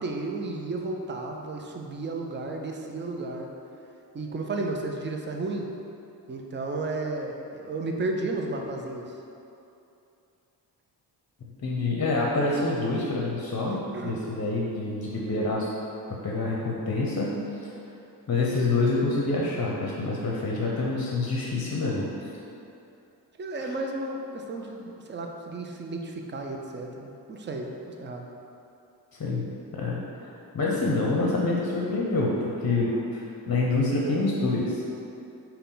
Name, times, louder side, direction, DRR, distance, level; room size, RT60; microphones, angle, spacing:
voice 1, 0.0-3.5 4.1-5.7 6.3-9.1 13.9-14.2 23.4-28.3, right 2 dB, 25° right, 2 dB, 0.5 m, -33 dB
voice 2, 11.6-15.7 16.2-17.4 18.3-22.3 23.6-23.7 29.1-29.4 29.7-34.8, left 2 dB, 35° left, -3 dB, 0.7 m, -27 dB
5.4 x 2.3 x 3.9 m, 2.8 s
supercardioid pair, 55°, 44 cm